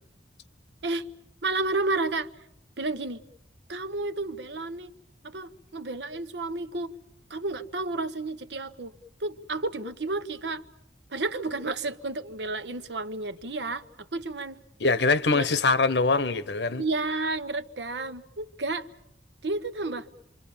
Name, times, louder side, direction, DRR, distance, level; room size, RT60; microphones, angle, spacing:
voice 1, 1.4-2.3 2.8-3.2 3.7-4.9 5.2-6.9 7.3-8.9 9.2-10.6 11.1-13.8 14.1-14.6 15.3-15.5 16.7-18.9 19.4-20.1, right 3 dB, 80° right, 1.1 m, -31 dB
voice 2, 14.8-16.8, left 3 dB, 75° left, 1.1 m, -23 dB
28.0 x 24.5 x 7.2 m
head